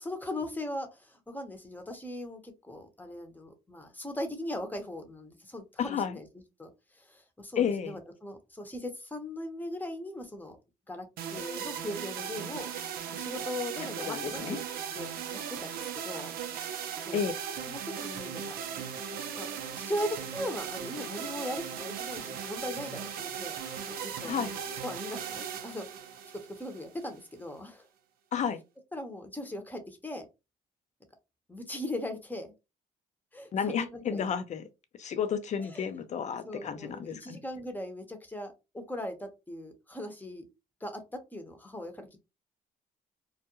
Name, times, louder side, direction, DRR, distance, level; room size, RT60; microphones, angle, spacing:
voice 1, 0.0-6.3 6.6-10.6 10.9-12.7 13.1-14.6 14.9-16.3 17.1-17.3 17.7-18.5 19.3-19.5 19.8-23.6 23.9-25.9 26.5-27.9 28.9-30.3 31.5-32.5 33.3-34.3 35.6-35.9 36.4-40.4 40.8-42.2, left 1 dB, 10° left, 0.8 m, -39 dB
voice 2, 5.8-6.2 7.6-8.0 14.1-14.6 17.1-17.3 24.2-24.5 28.3-28.6 33.5-34.6 35.0-37.4, left 7 dB, 50° left, 0.5 m, -31 dB
sound 1, 11.2-27.2, right 8 dB, 75° right, 0.5 m, -38 dB
2.3 x 2.1 x 2.9 m
supercardioid pair, 70°, 16 cm